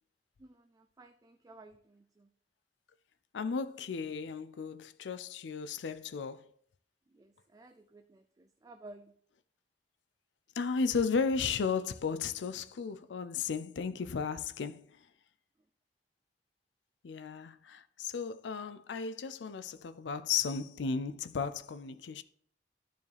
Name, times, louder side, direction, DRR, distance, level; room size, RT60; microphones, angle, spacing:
voice 1, 0.4-2.3 7.1-9.2, right 2 dB, 20° right, 0.3 m, -55 dB
voice 2, 3.3-6.5 10.6-14.9 17.0-22.2, left 5 dB, 90° left, 0.4 m, -34 dB
11.5 x 4.8 x 3.4 m
head